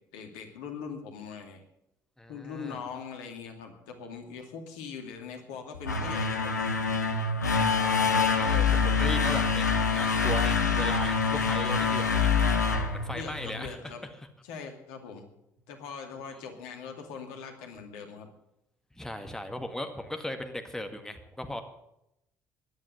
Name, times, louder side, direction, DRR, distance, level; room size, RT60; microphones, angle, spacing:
voice 1, 0.1-1.6 2.3-6.8 13.1-14.0 14.4-15.3 15.7-18.3, left 6 dB, 65° left, 4 dB, 2.3 m, -41 dB
voice 2, 2.2-2.8 7.6-12.3 12.8-14.3 16.3-16.4 18.9-21.6, left 1 dB, 5° left, 6 dB, 2.0 m, -38 dB
sound 1, 5.7-13.7, left 5 dB, 85° left, 1.0 m, -26 dB
14.5 x 11.0 x 7.8 m, 0.83 s
figure-of-eight pair, 50°, 9 cm